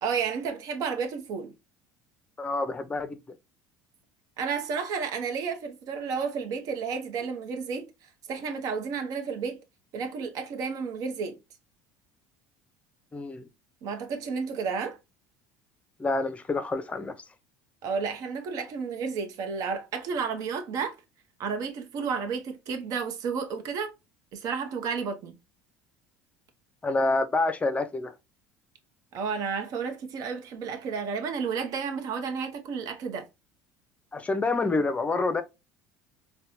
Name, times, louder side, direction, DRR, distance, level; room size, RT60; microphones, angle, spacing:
voice 1, 0.0-1.5 4.4-7.9 8.3-9.6 9.9-11.4 13.8-15.0 17.8-21.0 21.4-23.9 24.3-25.3 29.1-33.3, right 5 dB, 55° right, 0.8 m, -31 dB
voice 2, 2.4-3.2 13.1-13.5 16.0-17.2 26.8-28.1 34.1-35.4, left 3 dB, 20° left, 0.6 m, -27 dB
4.2 x 2.2 x 2.6 m
supercardioid pair, 100°, 7 cm